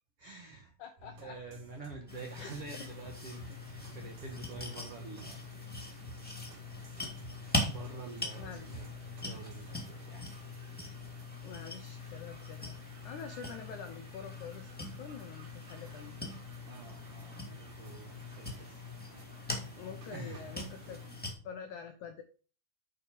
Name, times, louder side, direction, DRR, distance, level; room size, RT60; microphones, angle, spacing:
voice 1, 0.2-0.7 1.2-5.4 7.6-10.4 16.7-19.6 20.1-20.6, right 3 dB, 75° right, 1 dB, 1.3 m, -48 dB
voice 2, 0.8-1.4 2.3-2.9 8.3-8.7 11.4-12.8 13.0-16.2 19.8-22.2, left 6 dB, 85° left, 6 dB, 1.7 m, -46 dB
sound 1, 1.0-18.6 19.2-19.3 19.5-19.6 20.0-20.1 20.3-20.4, right 2 dB, 55° right, 3.8 m, -55 dB
sound 2, 2.1-21.3, left 2 dB, 5° left, 1.2 m, -42 dB
sound 3, 2.7-21.1, right 2 dB, 40° right, 2.0 m, -58 dB
9.2 x 4.5 x 5.3 m, 0.38 s
omnidirectional pair, 4.5 m